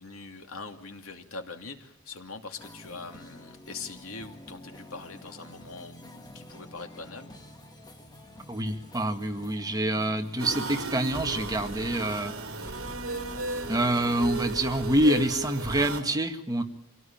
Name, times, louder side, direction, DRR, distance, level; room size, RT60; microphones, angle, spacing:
voice 1, 0.0-7.3, left 4 dB, 70° left, 5 dB, 2.7 m, -42 dB
sound 1, 2.6-14.6, left 1 dB, 20° left, 1.9 m, -49 dB
voice 2, 8.5-12.3 12.6-12.8 13.7-16.6, right 1 dB, 15° right, 5 dB, 1.8 m, -26 dB
sound 2, 10.4-16.0, right 2 dB, 65° right, 3.1 m, -35 dB
27.0 x 17.5 x 8.8 m, 0.79 s
head